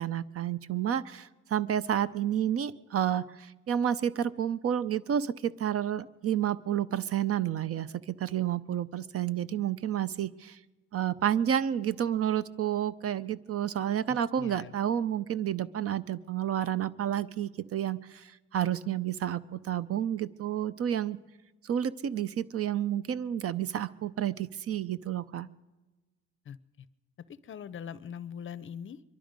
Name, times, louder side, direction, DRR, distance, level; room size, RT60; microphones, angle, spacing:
voice 1, 0.0-10.6 10.9-21.2 21.6-25.5, right 10 dB, 50° right, 17 dB, 0.5 m, -30 dB
voice 2, 14.1-14.8 26.4-26.9 27.2-29.0, left 8 dB, 40° left, 18 dB, 0.6 m, -42 dB
23.0 x 12.0 x 5.2 m, 1.2 s
cardioid pair, 90°, 30 cm